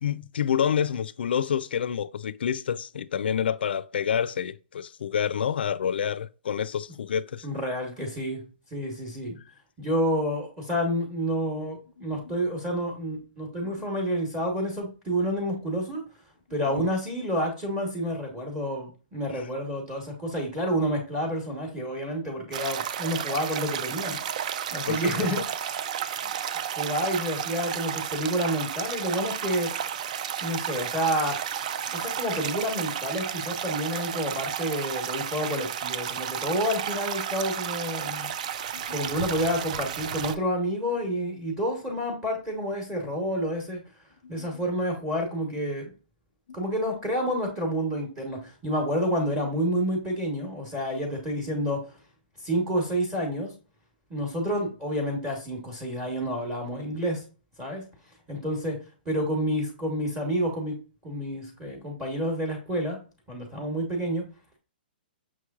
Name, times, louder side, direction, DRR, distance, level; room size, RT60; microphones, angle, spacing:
voice 1, 0.0-7.5 12.3-12.4 16.7-16.9 24.7-25.4 31.9-32.0 38.7-39.1 44.2-44.6, left 8 dB, 80° left, 0.4 m, -28 dB
voice 2, 7.4-8.4 8.7-9.4 9.8-16.0 16.5-24.2 24.7-25.4 26.2-26.4 26.8-29.8 30.4-31.4 31.9-38.3 38.9-43.8 44.3-45.9 46.5-51.9 52.4-53.5 54.1-57.2 57.6-57.8 58.3-58.8 59.0-60.8 61.0-63.0 63.3-64.3, equal, 10° right, 1.0 m, -29 dB
sound 1, 22.5-40.4, right 9 dB, 45° right, 0.4 m, -32 dB
5.9 x 3.1 x 2.3 m
hypercardioid pair, 165°, 5 cm